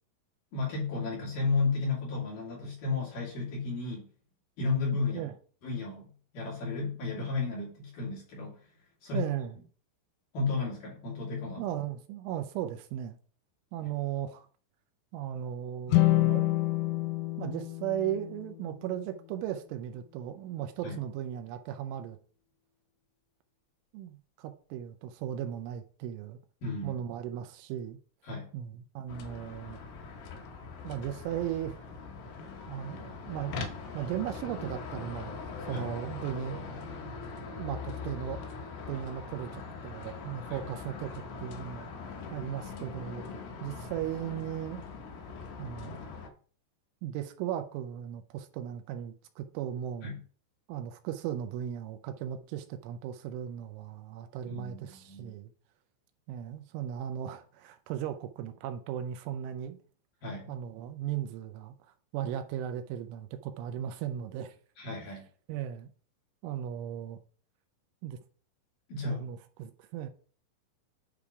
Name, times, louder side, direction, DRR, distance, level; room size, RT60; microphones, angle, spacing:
voice 1, 0.5-4.1 4.6-5.2 5.6-6.1 6.3-8.6 9.0-9.3 10.3-11.7 20.8-21.0 26.6-27.0 28.2-28.5 35.7-35.8 40.5-40.6 50.0-50.2 54.4-55.3 60.2-60.5 64.8-65.2 68.9-69.3, left 4 dB, 50° left, 3.3 m, -33 dB
voice 2, 9.1-9.6 11.6-13.2 13.7-14.5 15.1-16.6 17.4-22.2 23.9-26.4 26.8-28.0 28.5-29.8 30.8-31.8 32.7-33.7 33.9-36.6 37.6-38.4 38.9-41.9 42.3-43.3 43.6-44.8 45.6-46.0 47.0-50.1 50.7-55.5 56.3-59.8 60.5-61.7 62.1-64.6 65.5-65.9 66.4-67.2 68.0-68.2 69.1-70.1, right 10 dB, 80° right, 3.0 m, -37 dB
sound 1, 15.9-19.2, left 18 dB, 90° left, 3.3 m, -28 dB
sound 2, 29.1-46.3, left 4 dB, 70° left, 2.8 m, -42 dB
9.9 x 3.6 x 4.7 m
omnidirectional pair, 5.7 m